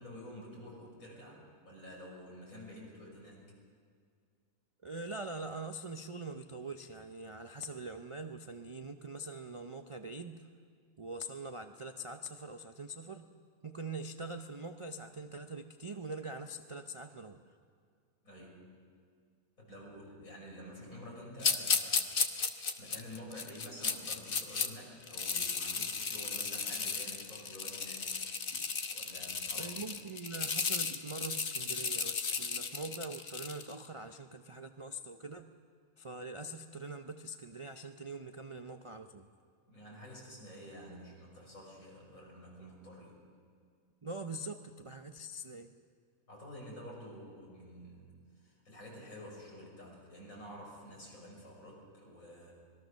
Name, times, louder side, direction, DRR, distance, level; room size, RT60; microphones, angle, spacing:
voice 1, 0.0-3.4 18.2-18.6 19.6-28.1 28.9-29.9 39.7-43.2 46.3-48.1 48.4-52.5, equal, 65° left, -2 dB, 6.3 m, -50 dB
voice 2, 4.8-10.5 11.0-13.3 13.6-17.4 28.5-28.7 29.5-35.5 36.0-39.3 44.0-45.7, right 2 dB, 35° right, 7 dB, 0.5 m, -43 dB
sound 1, 21.4-24.7 25.0-33.7, left 5 dB, 40° left, 1.1 m, -35 dB
25.5 x 20.0 x 6.5 m, 2.1 s
omnidirectional pair, 1.6 m